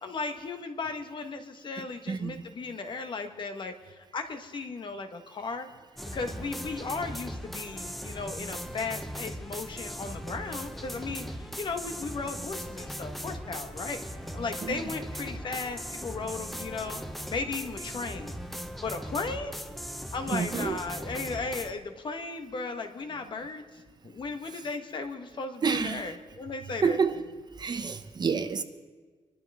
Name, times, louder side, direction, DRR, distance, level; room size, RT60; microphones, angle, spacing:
voice 1, 0.0-5.7 6.1-14.0 14.3-17.0 17.3-18.4 18.8-19.6 20.1-23.6 24.0-27.0, left 4 dB, 45° left, 1.4 m, -36 dB
voice 2, 1.8-2.4 14.6-14.9 20.3-20.8 24.5-24.6 25.6-26.1 26.8-27.2 27.6-28.6, right 5 dB, 40° right, 0.8 m, -29 dB
sound 1, 6.0-21.7, equal, ahead, 0.7 m, -39 dB
25.0 x 12.0 x 3.6 m
wide cardioid pair, 135°, 11 cm